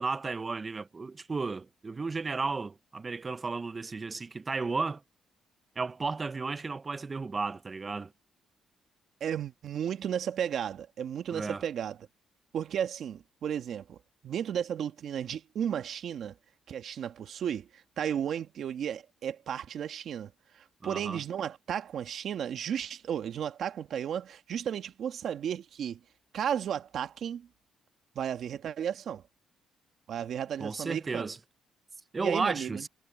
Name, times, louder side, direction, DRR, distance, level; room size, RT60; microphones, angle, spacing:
voice 1, 0.0-5.0 5.8-8.1 11.3-11.6 20.8-21.2 30.6-31.4 32.1-32.9, right 4 dB, 30° right, 0.5 m, -33 dB
voice 2, 9.2-12.1 12.5-14.0 14.2-16.3 16.7-26.0 26.3-27.5 28.1-29.2 30.1-31.3 32.2-32.9, right 9 dB, 65° right, 1.7 m, -34 dB
cardioid pair, 90°, 0 cm